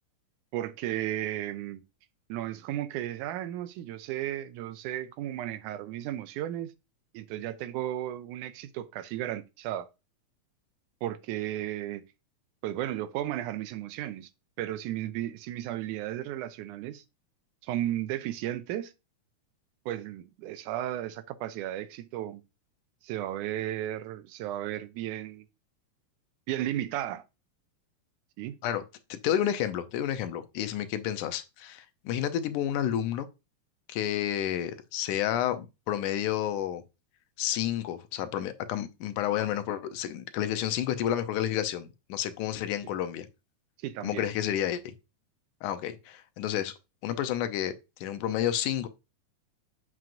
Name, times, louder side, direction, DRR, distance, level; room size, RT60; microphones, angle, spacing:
voice 1, 0.5-1.8 2.3-6.7 7.1-9.9 11.0-12.0 12.6-14.3 14.6-17.0 17.6-18.9 19.9-22.4 23.0-25.5 26.5-27.2 28.4-28.6 42.8-42.9 43.8-44.3, right 13 dB, 85° right, 2.1 m, -34 dB
voice 2, 29.1-33.3 33.9-36.8 37.4-43.3 44.0-44.9 45.6-46.7 47.0-47.7 48.0-48.9, left 11 dB, 85° left, 2.2 m, -30 dB
7.6 x 6.1 x 2.6 m
omnidirectional pair, 3.5 m